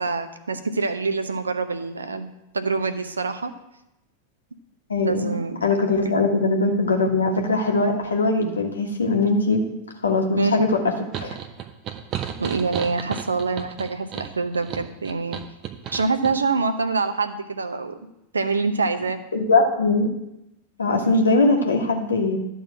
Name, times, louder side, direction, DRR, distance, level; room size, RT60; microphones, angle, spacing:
voice 1, 0.0-2.3 2.5-3.5 5.0-5.6 6.0-6.1 10.4-10.7 12.4-15.4 15.9-18.0 18.3-19.2, right 4 dB, 75° right, 10 dB, 0.8 m, -25 dB
voice 2, 4.9-5.4 5.6-9.6 10.0-10.7 11.2-11.4 19.3-20.1 20.8-22.4, left 3 dB, 75° left, 2 dB, 1.5 m, -21 dB
sound 1, 11.1-16.4, right 9 dB, 35° right, 0.8 m, -33 dB
11.5 x 3.9 x 7.7 m, 0.87 s
figure-of-eight pair, 90°, 0 cm